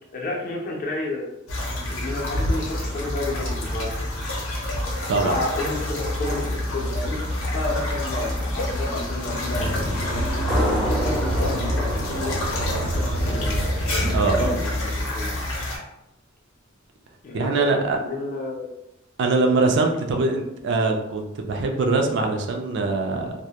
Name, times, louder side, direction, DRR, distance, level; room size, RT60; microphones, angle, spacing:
voice 1, 0.1-1.3 1.8-3.9 5.1-6.4 6.7-7.2 7.5-10.5 10.7-13.6 14.3-15.3 17.2-18.7, left 2 dB, 45° left, -1 dB, 0.5 m, -31 dB
sound 1, 1.5-15.8, left 1 dB, 85° left, 0.7 m, -27 dB
sound 2, 9.5-14.5, right 2 dB, 85° right, 0.9 m, -29 dB
sound 3, 10.5-13.8, equal, ahead, 0.5 m, -30 dB
voice 2, 14.1-14.6 17.3-18.0 19.2-23.3, right 3 dB, 60° right, 3 dB, 0.4 m, -22 dB
2.1 x 2.1 x 2.8 m, 0.89 s
head